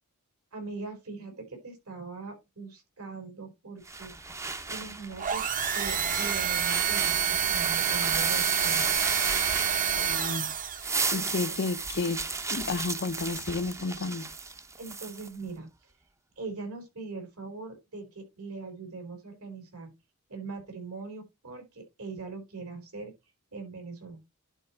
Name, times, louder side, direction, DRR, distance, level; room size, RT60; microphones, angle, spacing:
voice 1, 0.5-4.4 4.7-8.9 11.1-11.3 14.8-15.7 16.4-19.9 20.3-23.1 23.5-24.2, right 3 dB, 75° right, 4.1 m, -41 dB
sound 1, 3.9-10.2 10.6-15.3, right 4 dB, 15° right, 0.7 m, -34 dB
sound 2, 5.2-11.0, right 8 dB, 40° right, 0.9 m, -28 dB
voice 2, 10.0-10.5 11.1-14.3, left 3 dB, 50° left, 0.6 m, -32 dB
11.0 x 4.2 x 4.3 m
head